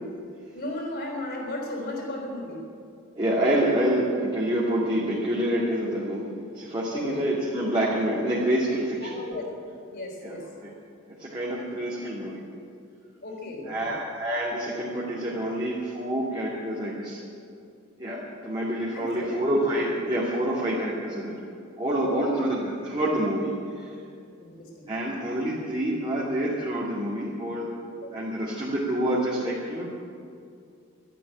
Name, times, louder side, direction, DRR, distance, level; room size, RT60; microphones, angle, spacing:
voice 1, 0.5-2.6 6.9-7.2 9.0-9.5 9.9-10.4 13.2-14.0 18.9-19.3 21.8-22.5 24.4-24.9 28.0-28.3, left 2 dB, 50° left, 0 dB, 3.9 m, -35 dB
voice 2, 3.1-6.3 6.5-9.2 10.2-10.4 10.6-10.7 11.2-12.4 13.6-17.2 18.0-21.4 21.8-23.9 24.9-27.7 28.1-29.9, right 1 dB, 25° right, -7 dB, 2.6 m, -27 dB
13.0 x 12.0 x 8.8 m, 2.4 s
head